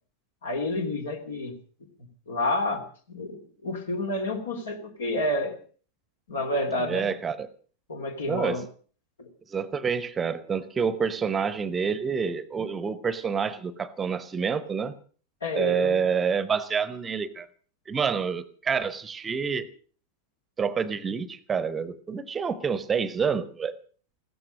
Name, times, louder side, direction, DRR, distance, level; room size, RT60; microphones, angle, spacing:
voice 1, 0.4-1.6 2.3-2.8 3.1-5.5 6.3-7.1 7.9-8.6 9.2-9.3 15.4-16.0, left 1 dB, 70° left, 2.8 m, -29 dB
voice 2, 6.8-7.5 8.3-8.6 9.5-14.9 15.5-17.5 17.9-19.7 20.6-23.7, right 6 dB, 20° right, 0.9 m, -28 dB
16.0 x 14.0 x 6.2 m
figure-of-eight pair, 90°, 0 cm